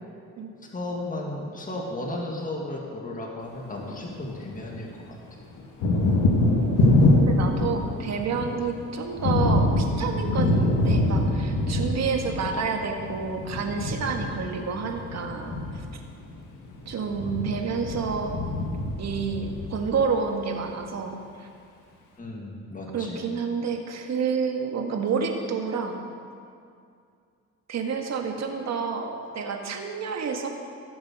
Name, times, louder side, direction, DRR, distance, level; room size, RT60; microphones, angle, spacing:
voice 1, 0.7-5.2 10.6-10.8 22.2-23.3, left 1 dB, 25° left, -1 dB, 2.0 m, -34 dB
Thunder, 3.5-4.8 5.0-20.3, left 1 dB, 85° left, 1.8 m, -25 dB
voice 2, 6.0-16.0 16.9-18.4 19.0-21.5 22.9-26.0 27.7-30.5, right 5 dB, 60° right, 3 dB, 1.6 m, -29 dB
15.5 x 7.3 x 6.2 m, 2.4 s
cardioid pair, 90°, 30 cm